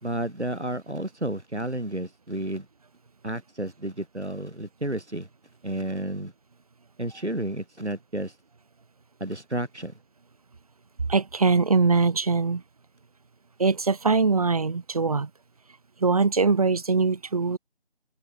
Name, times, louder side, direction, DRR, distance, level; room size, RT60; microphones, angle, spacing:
voice 1, 0.0-2.7 3.2-5.3 5.6-6.3 7.0-8.4 9.2-10.0, right 1 dB, 85° right, 5.2 m, -31 dB
voice 2, 11.1-12.6 13.6-15.3 16.0-17.6, right 4 dB, 35° right, 4.4 m, -22 dB
figure-of-eight pair, 165°, 33 cm